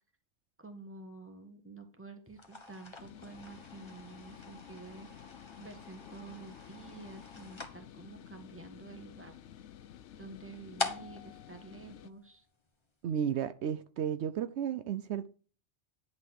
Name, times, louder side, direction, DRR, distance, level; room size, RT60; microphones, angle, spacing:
voice 1, 0.6-5.3 5.6-9.4 10.2-12.5, right 3 dB, 10° right, 1.5 m, -49 dB
sound 1, 2.3-12.7, left 3 dB, 25° left, 1.3 m, -45 dB
sound 2, 3.0-12.1, left 10 dB, 85° left, 0.9 m, -52 dB
voice 2, 13.0-15.3, right 8 dB, 75° right, 0.9 m, -33 dB
11.0 x 4.1 x 7.5 m
omnidirectional pair, 1.2 m